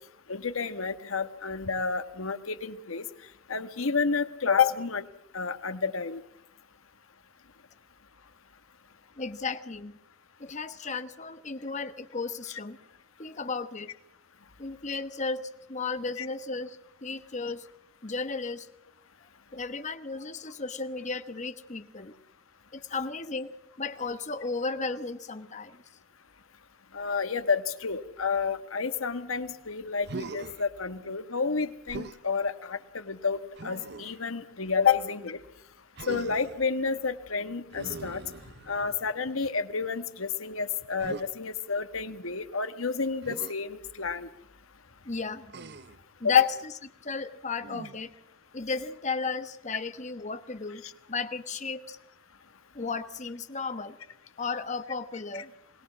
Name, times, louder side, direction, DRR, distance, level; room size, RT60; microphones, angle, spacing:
voice 1, 0.3-3.0 3.5-5.0 5.3-6.2 16.2-16.3 26.9-35.4 36.1-38.2 38.7-44.3 46.2-46.5, left 5 dB, 85° left, 10 dB, 1.4 m, -29 dB
voice 2, 9.2-9.9 10.4-12.8 13.2-13.9 14.6-17.7 18.0-18.7 19.5-22.1 22.7-23.5 23.8-25.8 38.4-38.6 45.0-45.5 46.2-46.5 47.0-48.1 48.5-50.8 51.1-52.0 52.7-54.0 54.4-55.5, left 4 dB, 35° left, 10 dB, 1.3 m, -34 dB
Human voice, 30.0-30.6 31.9-32.2 33.5-34.2 35.9-36.6 37.7-38.9 41.0-41.3 43.2-43.5 45.5-46.0 47.6-48.1, right 3 dB, 55° right, 0.8 m, -41 dB
21.5 x 19.5 x 7.4 m, 0.74 s
head